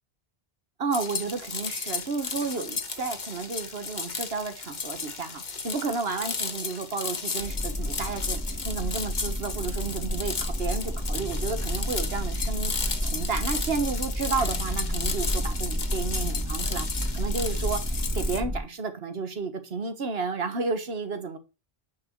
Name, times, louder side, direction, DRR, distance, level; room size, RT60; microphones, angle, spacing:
voice 1, 0.8-16.9 17.1-21.4, right 4 dB, 75° right, 1.6 m, -32 dB
sound 1, 0.9-18.4, left 5 dB, 50° left, 1.2 m, -34 dB
sound 2, 7.4-18.6, equal, 15° right, 3.4 m, -30 dB
10.5 x 4.7 x 4.6 m
omnidirectional pair, 1.0 m